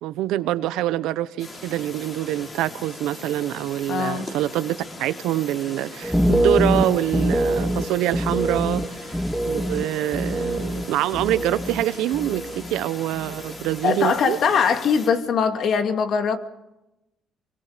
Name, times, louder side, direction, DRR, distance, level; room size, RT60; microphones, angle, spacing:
voice 1, 0.0-14.4, right 14 dB, 85° right, 0.9 m, -25 dB
sound 1, 1.4-15.1, left 2 dB, 35° left, 5.9 m, -40 dB
voice 2, 3.9-4.3 13.8-16.4, left 6 dB, 60° left, 2.3 m, -21 dB
sound 2, 6.0-11.9 12.1-12.8 13.1-13.6, right 1 dB, ahead, 1.8 m, -24 dB
24.5 x 24.0 x 5.1 m
cardioid pair, 95°, 0 cm